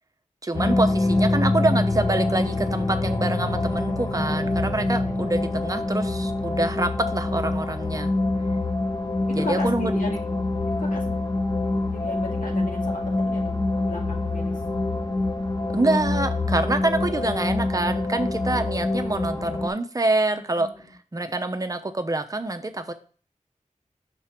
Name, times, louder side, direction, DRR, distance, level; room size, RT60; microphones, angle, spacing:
voice 1, 0.4-8.1 9.3-10.0 15.7-20.7 21.1-22.9, right 2 dB, 25° right, 8 dB, 0.7 m, -26 dB
sound 1, 0.5-19.7, left 2 dB, 30° left, 0.8 m, -25 dB
voice 2, 4.6-5.5 9.3-10.4 10.7-11.3 11.9-14.6 18.5-18.6 18.9-19.5 20.3-20.9, left 2 dB, 85° left, -2 dB, 1.9 m, -37 dB
6.0 x 3.1 x 5.7 m, 0.41 s
wide cardioid pair, 70°, 13 cm